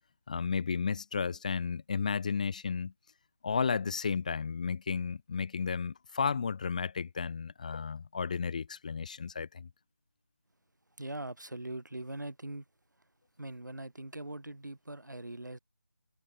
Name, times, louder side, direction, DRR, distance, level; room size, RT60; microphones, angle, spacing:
voice 1, 0.3-2.9 3.4-9.7, left 5 dB, 25° left, 0.7 m, -33 dB
voice 2, 11.0-12.6 13.4-15.6, right 1 dB, 80° right, 7.6 m, -41 dB
figure-of-eight pair, 165°, 10 cm